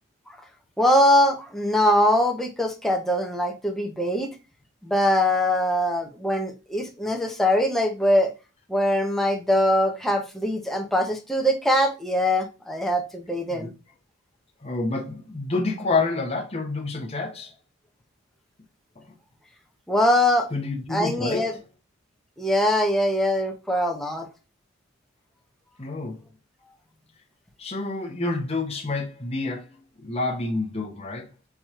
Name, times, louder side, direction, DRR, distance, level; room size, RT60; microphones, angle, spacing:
voice 1, 0.8-4.3 4.8-8.3 8.7-13.7 19.9-20.5 20.9-21.5 22.4-24.3, left 1 dB, ahead, 0.9 m, -22 dB
voice 2, 14.6-17.5 20.5-21.5 25.8-26.2 27.6-31.3, left 3 dB, 30° left, 1.0 m, -28 dB
4.7 x 3.0 x 3.6 m
head